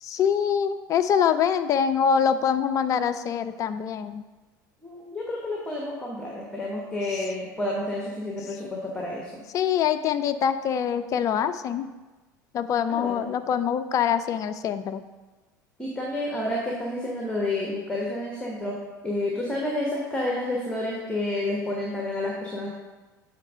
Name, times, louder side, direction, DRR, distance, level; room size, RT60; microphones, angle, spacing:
voice 1, 0.0-4.2 9.5-11.9 12.5-15.0, left 8 dB, 30° left, 10 dB, 0.4 m, -24 dB
voice 2, 4.8-9.4 12.9-13.2 15.8-18.8 19.0-22.7, left 1 dB, 10° left, -2 dB, 1.3 m, -30 dB
8.3 x 3.7 x 5.0 m, 1.2 s
figure-of-eight pair, 70°, 10 cm